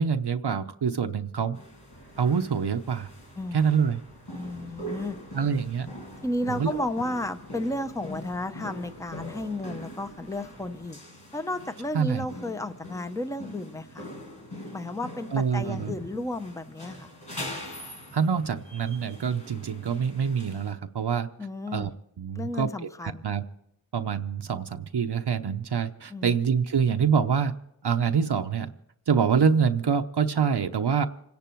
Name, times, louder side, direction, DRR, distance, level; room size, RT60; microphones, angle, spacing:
voice 1, 0.0-1.6 2.2-3.1 3.5-4.0 5.3-5.9 6.5-6.8 11.9-12.3 15.3-15.9 18.1-21.3 21.7-21.9 22.2-22.7 23.0-23.4 23.9-27.5 27.8-28.7 29.1-31.1, right 6 dB, 70° right, 6 dB, 0.8 m, -25 dB
sound 1, 1.5-20.7, left 1 dB, 70° left, 5.5 m, -43 dB
sound 2, 1.9-10.9, equal, 55° left, 2.3 m, -53 dB
voice 2, 3.4-3.7 4.3-5.2 6.2-11.0 11.3-14.1 14.7-17.1 21.4-21.9 22.3-23.2 26.1-26.4, left 1 dB, 5° left, 9 dB, 0.8 m, -33 dB
27.0 x 10.5 x 4.5 m, 0.76 s
wide cardioid pair, 75°, 42 cm